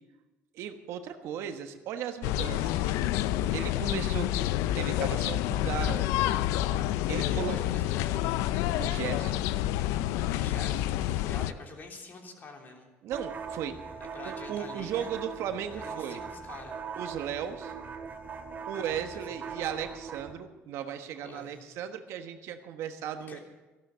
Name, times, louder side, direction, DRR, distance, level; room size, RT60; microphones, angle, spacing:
voice 1, 0.5-2.9 3.5-4.3 4.8-6.3 7.1-7.6 8.8-9.4 13.0-13.8 14.2-16.2 17.0-17.7 18.7-23.4, right 9 dB, 70° right, 7 dB, 1.3 m, -36 dB
sound 1, 2.2-11.5, left 13 dB, 85° left, 0.5 m, -28 dB
voice 2, 7.1-8.3 10.3-12.9 14.1-15.2 15.7-16.8 18.7-19.0 19.3-19.4 21.2-21.6 23.3-23.4, left 3 dB, 40° left, 2 dB, 3.2 m, -46 dB
sound 2, 13.1-20.3, right 6 dB, 35° right, 2.3 m, -41 dB
14.0 x 12.0 x 6.9 m, 1.1 s
cardioid pair, 105°, 5 cm